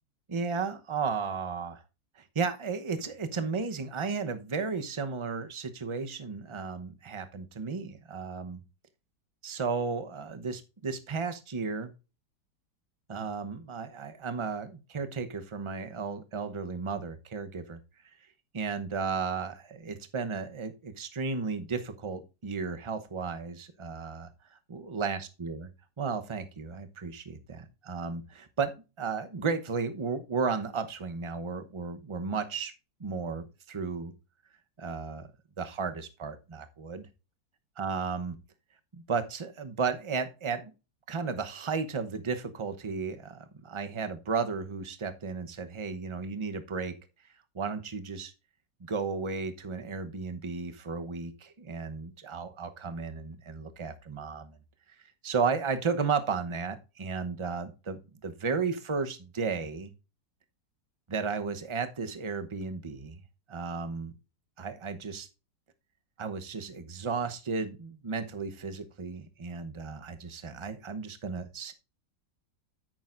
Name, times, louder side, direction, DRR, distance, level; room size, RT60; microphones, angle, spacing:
voice 1, 0.3-1.8 2.3-8.6 9.4-11.9 13.1-17.8 18.5-25.7 26.0-32.7 33.0-34.1 34.8-35.3 35.6-37.0 37.8-38.4 38.9-40.7 41.1-46.9 47.5-48.3 48.8-54.6 55.2-59.9 61.1-63.2 63.5-64.1 64.6-65.3 66.2-71.7, right 5 dB, 30° right, 9 dB, 0.6 m, -34 dB
10.0 x 8.9 x 2.5 m, 0.30 s
omnidirectional pair, 1.9 m